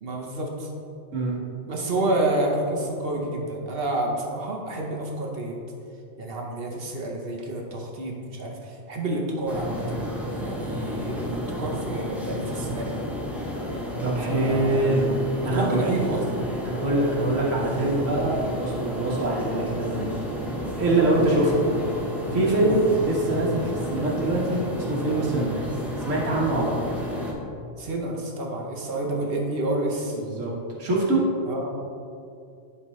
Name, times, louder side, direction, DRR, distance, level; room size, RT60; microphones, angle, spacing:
voice 1, 0.0-0.7 1.7-5.6 6.2-10.0 10.4-13.0 14.2-14.9 15.4-16.4 22.6-22.8 27.8-30.2 31.5-31.7, right 2 dB, 50° right, 0 dB, 1.1 m, -29 dB
sound 1, 9.5-27.3, equal, ahead, 0.8 m, -31 dB
voice 2, 14.0-15.1 15.4-15.8 16.7-20.2 20.8-21.7 22.3-25.6 26.0-26.6 29.1-29.2 30.1-30.5 30.8-31.2, right 2 dB, 90° right, -4 dB, 1.8 m, -24 dB
11.5 x 4.4 x 3.2 m, 2.6 s
omnidirectional pair, 1.3 m